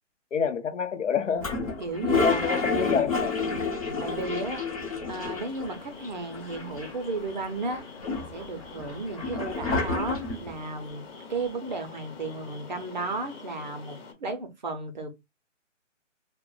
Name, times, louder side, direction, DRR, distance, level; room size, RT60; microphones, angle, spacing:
voice 1, 0.3-1.5 2.2-3.3, left 6 dB, 75° left, 0.7 m, -27 dB
Toilet flush, 1.4-5.8 6.0-6.1 6.3-7.2 7.7-10.5, left 4 dB, 30° left, 0.7 m, -29 dB
voice 2, 1.8-3.1 4.0-4.6 5.1-7.8 8.2-11.0 11.3-15.1, right 3 dB, 40° right, 0.5 m, -34 dB
sound 1, 5.1-14.1, left 4 dB, 50° left, 1.1 m, -45 dB
2.3 x 2.1 x 3.7 m
hypercardioid pair, 160°, 37 cm